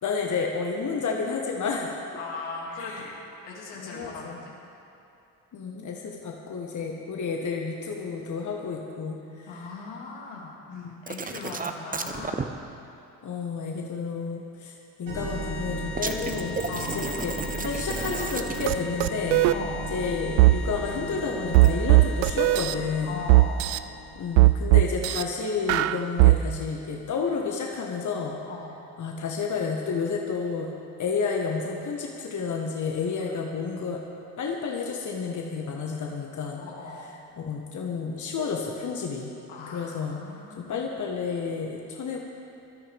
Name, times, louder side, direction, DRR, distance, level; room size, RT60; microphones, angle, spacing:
voice 1, 0.0-1.9 2.8-3.1 3.8-4.4 5.5-9.7 10.7-11.0 13.2-14.7 15.0-19.4 19.9-23.2 24.1-28.4 29.0-30.7 31.0-34.0 34.4-36.6 37.4-39.3 39.7-40.2 40.6-42.2, left 5 dB, 35° left, 0 dB, 1.6 m, -31 dB
voice 2, 2.1-3.1 3.4-4.5 9.5-12.5 16.7-17.0 19.5-19.9 23.0-23.7 28.4-28.8 33.2-33.4 36.6-37.1 39.5-40.9, left 3 dB, 75° left, -3 dB, 2.8 m, -39 dB
sound 1, 11.1-12.4 16.0-18.9 21.5-21.7, right 4 dB, 15° right, 0.9 m, -33 dB
sound 2, 15.1-24.5, equal, 85° right, 2.7 m, -36 dB
sound 3, 18.7-18.8 19.0-19.6 20.4-20.5 21.5-22.7 23.3-23.8 24.4-25.2 25.7-26.4, right 20 dB, 60° right, 0.6 m, -17 dB
19.5 x 13.0 x 3.6 m, 2.7 s
figure-of-eight pair, 50°, 48 cm